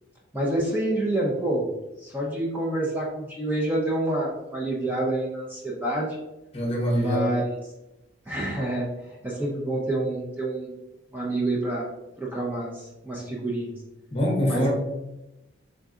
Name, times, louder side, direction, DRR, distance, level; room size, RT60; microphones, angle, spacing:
voice 1, 0.3-1.6 2.0-6.2 6.9-7.4 8.3-8.9 9.2-10.7 11.1-11.9 12.2-13.7 14.5-14.7, right 1 dB, 10° right, -3 dB, 0.6 m, -27 dB
voice 2, 6.5-7.4 14.1-14.7, equal, 30° left, -1 dB, 0.9 m, -24 dB
3.8 x 3.7 x 2.4 m, 0.96 s
head